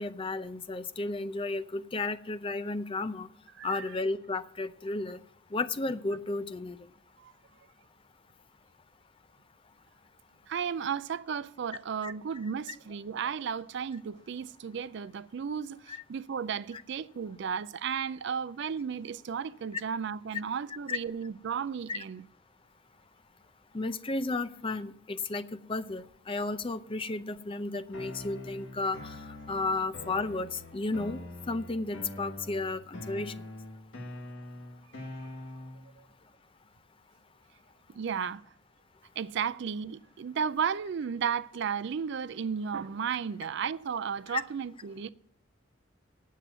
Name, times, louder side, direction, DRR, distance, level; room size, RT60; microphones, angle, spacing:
voice 1, 0.0-3.3 3.6-5.2 5.5-6.8 12.0-12.1 15.9-16.0 20.9-21.0 21.9-22.0 23.7-25.4 25.7-29.2 29.5-33.3 44.3-44.4, left 3 dB, 25° left, 0.5 m, -33 dB
voice 2, 10.5-22.2 35.8-36.0 37.9-38.4 39.2-45.1, right 7 dB, 60° right, 0.4 m, -34 dB
sound 1, 27.9-35.9, left 1 dB, 70° left, 1.6 m, -44 dB
9.3 x 7.4 x 7.9 m
head